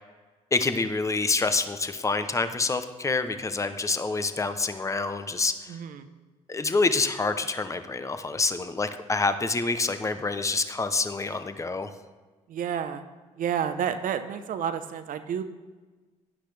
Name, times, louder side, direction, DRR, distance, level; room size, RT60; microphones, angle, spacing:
voice 1, 0.5-5.8 6.5-11.9, left 3 dB, 20° left, 10 dB, 0.8 m, -27 dB
voice 2, 5.7-6.1 12.5-13.0 13.4-15.4, right 8 dB, 65° right, 9 dB, 0.8 m, -30 dB
12.0 x 10.0 x 3.4 m, 1.3 s
supercardioid pair, 65°, 15 cm